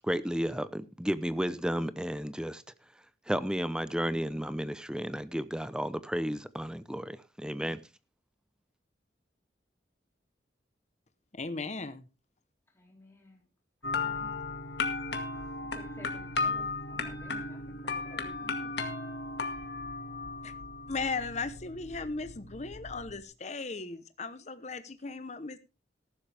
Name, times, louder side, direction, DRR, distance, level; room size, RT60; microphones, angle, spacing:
voice 1, 0.0-2.6 3.3-7.8, equal, 5° right, 0.7 m, -32 dB
voice 2, 11.3-12.0 20.4-20.5 20.9-25.6, left 4 dB, 40° left, 1.0 m, -37 dB
voice 3, 12.8-13.4 13.9-14.3 15.6-18.7, equal, 15° left, 4.0 m, -53 dB
sound 1, 13.8-23.2, left 3 dB, 70° left, 2.1 m, -36 dB
14.5 x 12.0 x 3.5 m
head